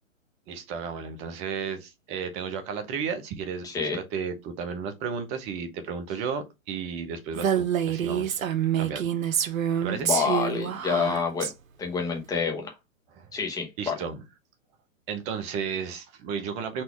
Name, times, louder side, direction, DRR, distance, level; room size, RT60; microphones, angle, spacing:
voice 1, 0.5-3.7 3.9-8.4 8.8-10.1 13.1-13.3 13.8-14.2 15.1-16.8, right 6 dB, 15° right, 0.7 m, -33 dB
voice 2, 3.6-4.0 9.9-11.5 11.8-12.7 13.3-13.9, left 5 dB, 10° left, 1.1 m, -28 dB
Female speech woman speaking, 7.4-11.5, right 9 dB, 75° right, 0.9 m, -27 dB
4.3 x 2.6 x 4.6 m
hypercardioid pair, 140°, 41 cm